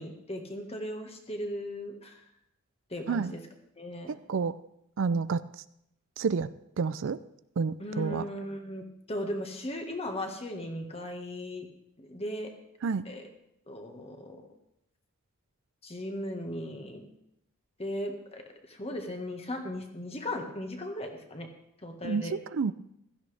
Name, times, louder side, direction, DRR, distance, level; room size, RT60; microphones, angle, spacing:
voice 1, 0.0-2.2 2.9-3.4 3.8-4.1 7.8-11.7 12.0-12.5 13.0-13.2 13.7-14.4 15.8-17.0 17.8-18.4 18.7-21.5 21.8-22.3, left 1 dB, 25° left, 4 dB, 1.7 m, -37 dB
voice 2, 5.0-5.4 6.2-7.2 7.6-8.3 12.8-13.1 22.0-22.7, right 5 dB, 60° right, 15 dB, 0.4 m, -29 dB
16.0 x 13.5 x 3.4 m, 0.78 s
head